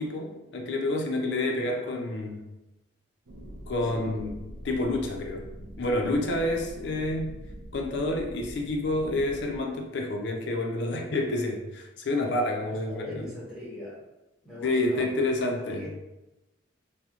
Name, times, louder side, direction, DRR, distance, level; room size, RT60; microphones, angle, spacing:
voice 1, 0.0-2.4 3.7-4.4 4.6-5.5 5.8-7.3 7.7-13.3 14.6-15.8, left 2 dB, 60° left, 1 dB, 0.4 m, -28 dB
voice 2, 1.7-2.4 3.7-4.1 6.4-6.6 12.7-14.0 14.4-15.3 15.7-15.9, left 1 dB, ahead, -9 dB, 1.0 m, -42 dB
sound 1, 3.3-9.6, equal, 85° right, 0.5 m, -43 dB
2.8 x 2.1 x 2.4 m, 1.0 s
head